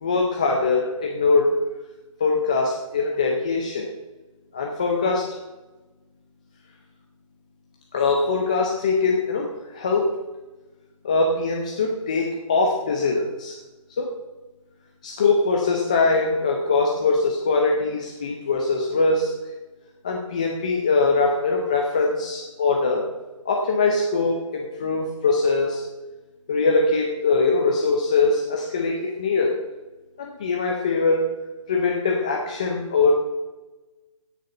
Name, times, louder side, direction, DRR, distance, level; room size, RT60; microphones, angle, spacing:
voice 1, 0.0-1.5 2.2-3.9 4.5-5.4 7.9-10.1 11.0-13.6 14.0-14.1 15.0-19.3 20.0-23.1 23.5-25.9 26.5-29.6 30.2-31.3 31.7-33.2, left 3 dB, 10° left, 0 dB, 0.5 m, -22 dB
17.0 x 6.6 x 5.4 m, 1.2 s
hypercardioid pair, 170°, 18 cm